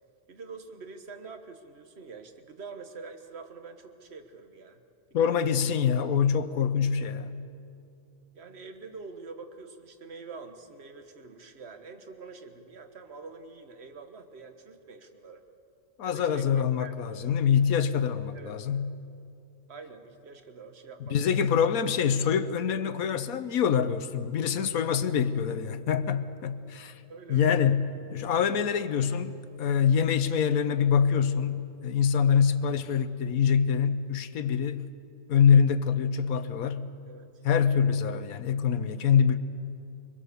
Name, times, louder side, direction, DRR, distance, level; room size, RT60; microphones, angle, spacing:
voice 1, 0.3-4.8 5.2-5.6 8.3-15.4 16.0-17.4 18.3-18.7 19.7-21.6 24.8-25.1 27.1-27.6 37.1-37.4, right 4 dB, 45° right, 1.6 m, -46 dB
voice 2, 5.1-7.3 16.0-18.9 21.1-27.0 27.3-27.8 28.1-34.9 35.3-36.9 37.4-39.4, left 7 dB, 75° left, 1.4 m, -25 dB
25.0 x 21.5 x 7.0 m
omnidirectional pair, 1.5 m